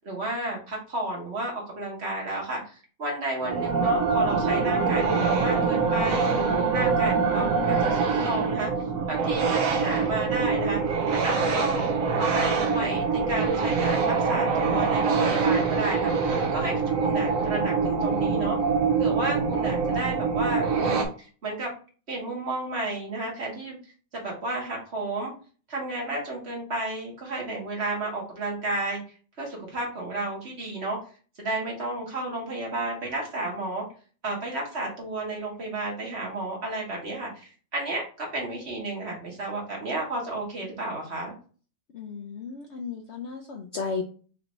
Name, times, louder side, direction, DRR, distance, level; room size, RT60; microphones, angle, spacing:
voice 1, 0.0-6.3 6.7-8.7 9.1-10.8 11.1-11.9 12.2-18.6 19.0-21.7 22.1-23.8 24.2-25.3 25.7-29.0 29.4-31.0 31.4-33.8 34.2-41.3, right 2 dB, 45° right, -1 dB, 1.5 m, -32 dB
sound 1, 3.4-21.1, right 5 dB, 60° right, 1.1 m, -24 dB
voice 2, 41.9-44.0, left 5 dB, 65° left, 2 dB, 0.7 m, -34 dB
5.3 x 2.7 x 3.0 m, 0.39 s
omnidirectional pair, 1.7 m